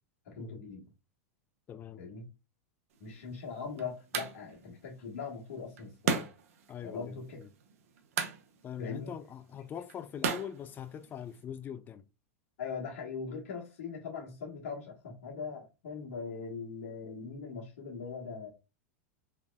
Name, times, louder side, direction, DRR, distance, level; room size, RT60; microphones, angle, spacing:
voice 1, 0.2-0.8 2.0-2.3 3.0-6.3 6.8-7.4 8.8-9.1 12.6-18.5, left 5 dB, 70° left, 1.3 m, -41 dB
voice 2, 1.7-2.1 6.7-7.5 8.6-12.1, left 9 dB, 25° left, 0.3 m, -42 dB
sound 1, 2.9-11.4, right 6 dB, 70° right, 0.7 m, -39 dB
3.4 x 3.1 x 2.3 m
hypercardioid pair, 110°, 8 cm